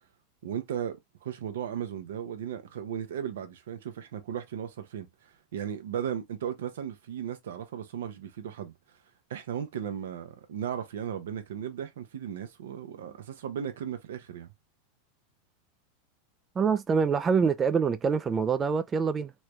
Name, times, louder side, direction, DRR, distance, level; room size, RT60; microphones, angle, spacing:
voice 1, 0.4-9.0 9.3-14.5, right 9 dB, 80° right, 0.7 m, -36 dB
voice 2, 16.6-19.3, right 6 dB, 25° right, 0.3 m, -25 dB
3.2 x 2.2 x 3.0 m
hypercardioid pair, 115°, 0 cm